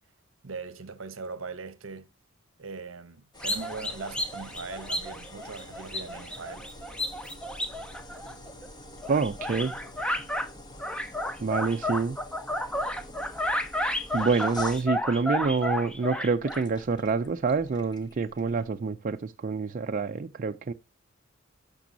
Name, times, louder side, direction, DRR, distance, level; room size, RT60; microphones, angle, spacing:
voice 1, 0.4-2.1 2.6-6.7, right 4 dB, 70° right, 0.9 m, -40 dB
sound 1, 3.3-18.7, left 1 dB, 20° left, 1.2 m, -47 dB
sound 2, 3.4-8.7 9.0-10.5 10.8-16.6, left 1 dB, 5° left, 0.7 m, -32 dB
voice 2, 9.1-9.7 11.4-12.2 14.1-20.7, right 4 dB, 40° right, 0.4 m, -27 dB
12.0 x 6.1 x 2.7 m
head